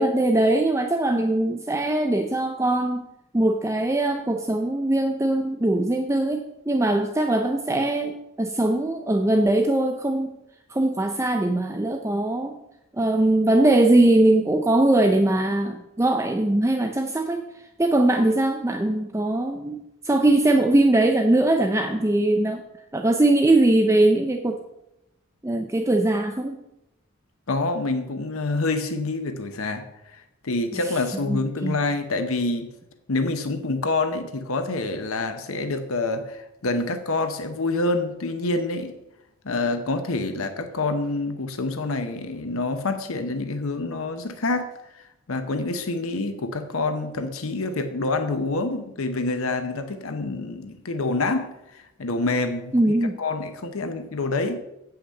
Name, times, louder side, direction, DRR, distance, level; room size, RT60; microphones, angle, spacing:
voice 1, 0.0-3.1 3.3-10.4 10.7-12.6 13.0-17.4 17.8-19.8 20.0-22.6 22.9-24.6 25.4-26.6 31.3-31.7 52.7-53.2, right 1 dB, 15° right, 0.4 m, -21 dB
voice 2, 27.5-32.7 33.1-39.0 39.4-52.7 53.0-54.6, left 2 dB, 80° left, 0.8 m, -27 dB
8.5 x 5.8 x 6.4 m
head